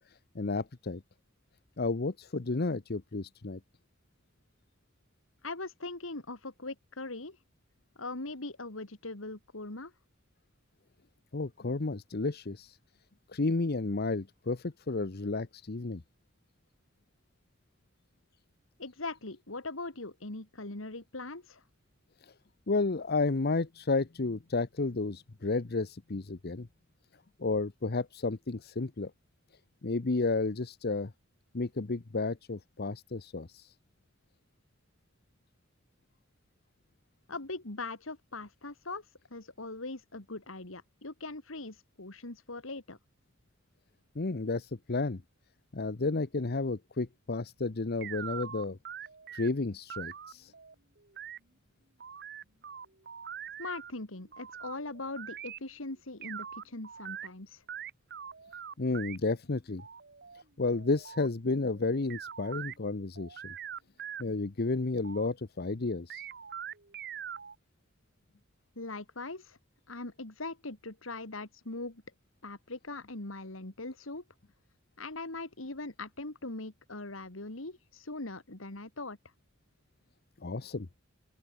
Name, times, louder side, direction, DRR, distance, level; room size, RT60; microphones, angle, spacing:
voice 1, 0.1-1.0 1.8-3.6 11.3-12.8 13.3-16.0 22.2-22.3 22.7-26.7 27.4-29.1 29.8-31.1 31.5-33.7 44.1-45.2 45.7-48.8 49.3-50.5 58.8-59.8 60.6-63.5 64.2-66.2 80.4-80.9, left 3 dB, 55° left, 0.9 m, -32 dB
voice 2, 5.4-7.4 8.0-9.9 18.8-21.6 37.3-43.0 53.6-57.6 68.8-69.6 69.9-72.0 72.4-74.2 75.0-79.2, left 2 dB, 85° left, 2.8 m, -41 dB
sound 1, 48.0-49.5 49.9-51.4 52.0-53.9 54.3-55.6 56.2-57.3 57.7-59.2 59.8-62.8 63.1-64.2 64.6-65.3 66.1-67.5, right 8 dB, 55° right, 2.7 m, -43 dB
open air
head